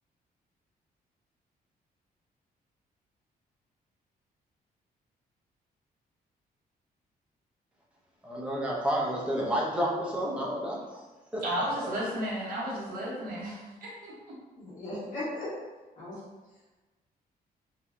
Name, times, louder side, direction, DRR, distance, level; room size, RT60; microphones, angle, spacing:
voice 1, 8.2-11.1 11.3-11.4 11.8-11.9, equal, 5° right, -5 dB, 0.6 m, -30 dB
voice 2, 11.4-14.3, equal, 70° right, -6 dB, 1.0 m, -33 dB
voice 3, 14.5-15.5 16.0-16.2, left 1 dB, 55° left, -11 dB, 1.4 m, -37 dB
4.3 x 2.3 x 2.6 m, 1.2 s
cardioid pair, 165°, 16 cm